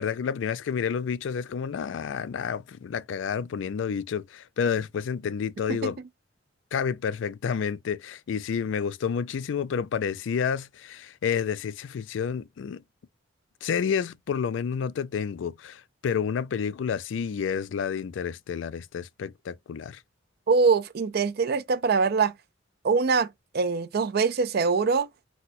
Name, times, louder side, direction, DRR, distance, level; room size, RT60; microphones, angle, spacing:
voice 1, 0.0-6.0 6.7-12.8 13.6-20.0, left 7 dB, 70° left, 0.3 m, -30 dB
voice 2, 20.5-22.3 22.8-23.3 23.5-25.1, right 4 dB, 55° right, 0.4 m, -23 dB
4.1 x 2.1 x 2.5 m
head